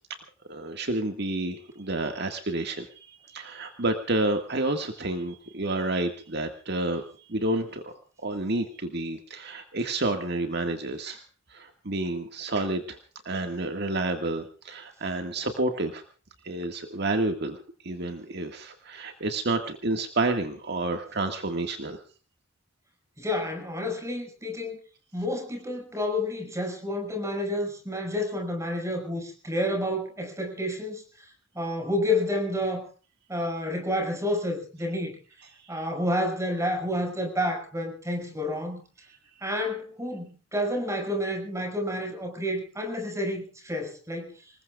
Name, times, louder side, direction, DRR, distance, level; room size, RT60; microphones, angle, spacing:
voice 1, 0.5-7.0 7.3-7.9 8.2-11.2 11.5-13.0 13.3-16.0 16.4-22.0 35.6-35.8, right 2 dB, 60° right, 5 dB, 1.9 m, -30 dB
voice 2, 23.2-24.8 25.1-31.0 31.5-32.8 33.3-35.2 35.7-38.8 39.4-44.4, left 1 dB, 15° right, 3 dB, 6.2 m, -29 dB
27.0 x 20.5 x 2.5 m, 0.37 s
head